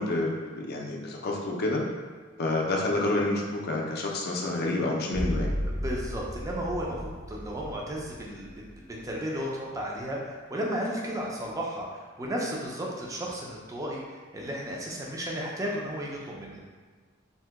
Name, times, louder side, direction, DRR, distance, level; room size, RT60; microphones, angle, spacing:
voice 1, 0.0-1.8 2.4-5.6, left 2 dB, 50° left, -1 dB, 0.4 m, -28 dB
sound 1, 5.1-9.1, equal, 80° right, 0.7 m, -34 dB
voice 2, 5.8-8.7 9.0-16.6, equal, 15° right, -3 dB, 0.4 m, -34 dB
2.7 x 2.1 x 3.4 m, 1.5 s
head